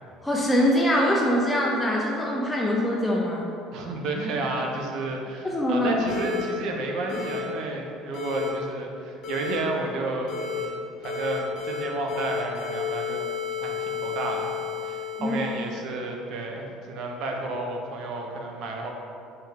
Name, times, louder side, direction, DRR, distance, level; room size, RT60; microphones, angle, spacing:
voice 1, 0.2-3.5 5.4-6.0 15.2-15.4, equal, 5° left, -3 dB, 0.3 m, -23 dB
voice 2, 3.7-13.2 13.6-14.5 14.8-18.9, right 2 dB, 55° right, 1 dB, 0.6 m, -31 dB
sound 1, 6.1-6.4 7.1-7.4 8.1-8.5 9.2-9.6 10.3-10.7 11.0-11.8 12.1-15.8, left 6 dB, 40° left, 1.5 m, -32 dB
4.4 x 3.4 x 3.5 m, 2.7 s
cardioid pair, 170°, 0 cm